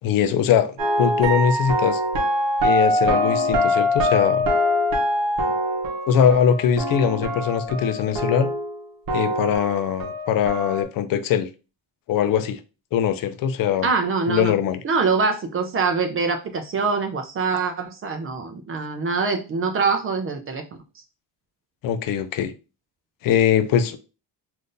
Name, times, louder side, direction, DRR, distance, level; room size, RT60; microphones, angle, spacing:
voice 1, 0.0-2.0 2.6-4.5 5.5-5.6 6.1-8.5 9.1-11.5 12.1-12.6 12.9-13.9 14.3-14.8 21.8-22.5 23.2-24.0, left 8 dB, 55° left, 0.5 m, -21 dB
sound 1, 0.8-8.8 9.1-10.8, left 1 dB, 55° right, 0.9 m, -23 dB
voice 2, 13.8-14.5 14.8-20.6, right 4 dB, 35° right, 0.4 m, -24 dB
3.6 x 2.6 x 2.5 m
cardioid pair, 135°, 42 cm